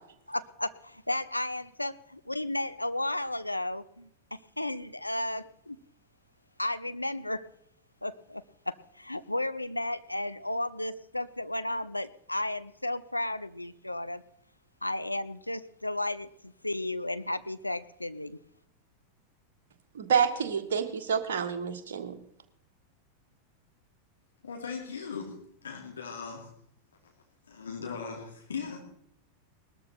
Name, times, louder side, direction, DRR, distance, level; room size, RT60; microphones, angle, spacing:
voice 1, 0.3-5.8 6.6-7.4 8.0-14.2 14.8-18.4, left 1 dB, 85° left, 11 dB, 0.6 m, -34 dB
voice 2, 19.9-22.2, right 7 dB, 60° right, 4 dB, 1.7 m, -28 dB
voice 3, 24.4-25.3 25.6-26.5 27.5-28.8, left 5 dB, 70° left, 0 dB, 3.1 m, -38 dB
19.5 x 13.5 x 4.5 m, 0.69 s
figure-of-eight pair, 90°, 0 cm